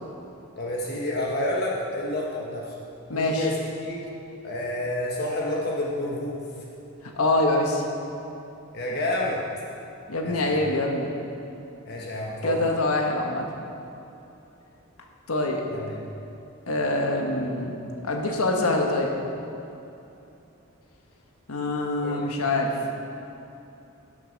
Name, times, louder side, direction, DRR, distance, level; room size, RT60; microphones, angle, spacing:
voice 1, 0.6-2.7 3.1-4.0 4.4-6.4 8.7-9.4 10.2-10.6 11.9-12.6 15.7-16.0 22.0-22.2, left 1 dB, 45° left, -3 dB, 1.2 m, -29 dB
voice 2, 3.1-3.5 7.0-7.8 10.1-11.1 12.4-13.5 15.3-15.6 16.7-17.8 18.0-19.1 21.5-22.7, left 2 dB, 85° left, 1 dB, 1.4 m, -25 dB
12.5 x 8.0 x 5.3 m, 2.8 s
head